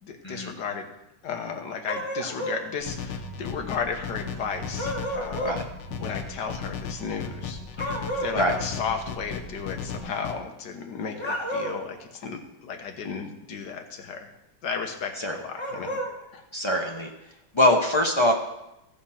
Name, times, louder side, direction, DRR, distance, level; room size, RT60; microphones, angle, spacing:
voice 1, 0.0-0.9 1.2-5.6 6.0-7.6 8.2-14.3 14.6-16.0 16.3-16.4, left 6 dB, 60° left, 4 dB, 1.6 m, -34 dB
sound 1, 1.8-2.6 4.8-5.6 7.8-8.4 11.1-11.9 15.5-16.1, equal, 15° left, 1.3 m, -31 dB
sound 2, 2.8-10.0, equal, 30° right, 5.5 m, -43 dB
sound 3, 2.9-10.3, left 7 dB, 90° left, 1.7 m, -36 dB
voice 2, 16.5-17.1 17.5-18.3, left 1 dB, 40° left, 1 dB, 0.4 m, -23 dB
14.5 x 5.1 x 5.7 m, 0.88 s
omnidirectional pair, 2.2 m